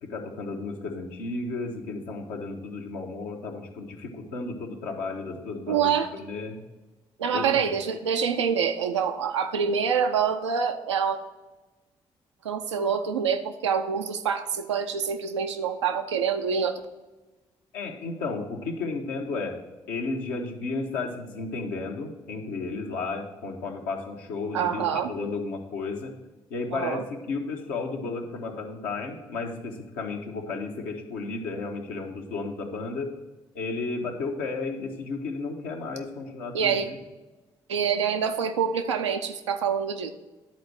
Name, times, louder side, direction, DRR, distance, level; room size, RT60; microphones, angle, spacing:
voice 1, 0.0-6.6 7.3-7.5 17.7-19.5 19.9-26.1 26.5-33.1 33.5-37.0, left 3 dB, 70° left, 1 dB, 1.1 m, -33 dB
voice 2, 5.7-6.1 7.2-11.2 12.4-16.8 24.5-25.1 26.7-27.0 36.5-36.9 37.7-40.1, right 7 dB, 85° right, 6 dB, 0.5 m, -26 dB
10.5 x 4.3 x 4.7 m, 1.2 s
figure-of-eight pair, 40°, 15 cm